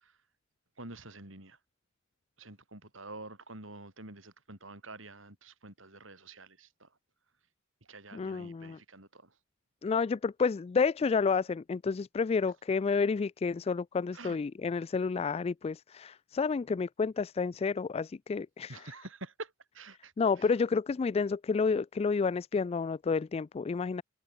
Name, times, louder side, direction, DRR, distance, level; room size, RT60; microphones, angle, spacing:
voice 1, 0.8-1.6 2.4-6.9 7.9-9.2 14.1-14.4 18.7-20.1, right 2 dB, 75° right, 7.4 m, -47 dB
voice 2, 8.1-8.8 9.8-18.9 20.2-24.0, left 5 dB, 30° left, 0.3 m, -30 dB
head